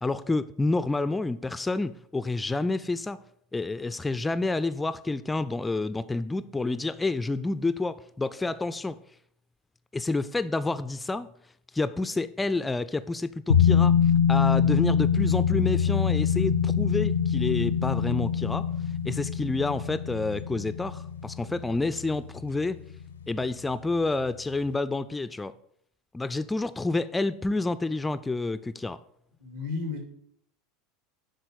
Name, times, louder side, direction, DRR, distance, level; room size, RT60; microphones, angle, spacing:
voice 1, 0.0-3.2 3.5-9.0 9.9-11.3 11.7-14.0 14.3-18.7 19.0-22.8 23.3-25.5 26.1-29.0, left 3 dB, 10° left, 14 dB, 0.3 m, -29 dB
sound 1, 13.5-22.6 22.9-23.0, left 7 dB, 75° left, 0.5 m, -24 dB
voice 2, 29.4-30.0, left 4 dB, 65° right, 3 dB, 2.4 m, -33 dB
10.0 x 4.1 x 6.6 m, 0.71 s
figure-of-eight pair, 75°, 0 cm